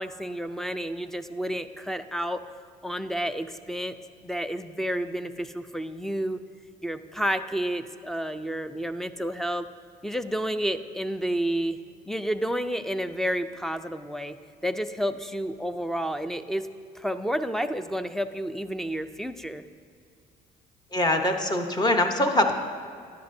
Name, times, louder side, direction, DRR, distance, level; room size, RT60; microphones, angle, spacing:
voice 1, 0.0-2.4 2.8-4.0 4.2-6.4 6.8-9.7 10.0-11.8 12.1-14.4 14.6-16.7 17.0-19.6, equal, ahead, 11 dB, 0.3 m, -30 dB
voice 2, 20.9-22.5, left 1 dB, 25° left, 5 dB, 0.9 m, -23 dB
13.0 x 10.5 x 2.7 m, 2.3 s
cardioid pair, 110°, 17 cm